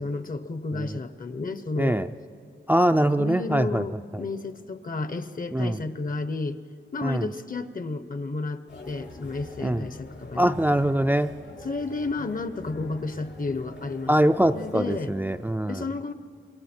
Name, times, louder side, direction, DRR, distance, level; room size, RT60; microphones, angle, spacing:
voice 1, 0.0-2.0 3.2-6.6 6.9-10.5 11.6-14.1 14.5-15.1 15.7-16.1, left 3 dB, 45° left, 11 dB, 0.9 m, -32 dB
voice 2, 1.8-2.1 2.7-3.8 4.1-4.2 5.5-5.8 7.0-7.3 9.6-9.9 10.4-11.3 14.1-15.9, right 1 dB, 10° right, 8 dB, 0.4 m, -23 dB
sound 1, 8.7-15.6, left 3 dB, 75° left, 7.2 m, -44 dB
27.5 x 23.0 x 4.5 m, 2.4 s
wide cardioid pair, 115°, 20 cm